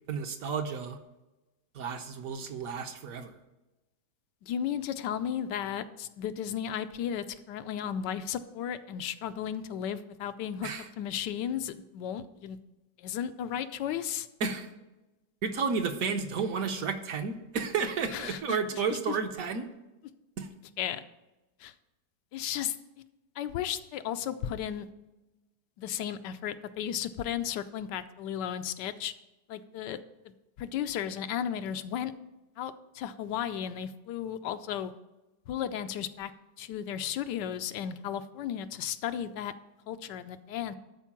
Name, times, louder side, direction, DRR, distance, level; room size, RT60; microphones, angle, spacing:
voice 1, 0.1-1.0 1.7-3.3 10.6-10.8 14.4-14.7 15.4-19.7 20.4-20.5, right 5 dB, 60° right, 7 dB, 1.1 m, -32 dB
voice 2, 4.4-10.7 11.0-12.6 13.0-14.3 18.1-19.2 20.8-21.0 21.6-21.7 22.3-22.8 23.4-24.9 25.8-29.1 29.5-30.0 30.2-30.3 30.6-32.1 32.6-34.9 35.5-36.3 36.6-39.5 39.9-40.8, left 9 dB, 90° left, 11 dB, 1.3 m, -34 dB
12.0 x 4.5 x 7.3 m, 1.0 s
omnidirectional pair, 1.8 m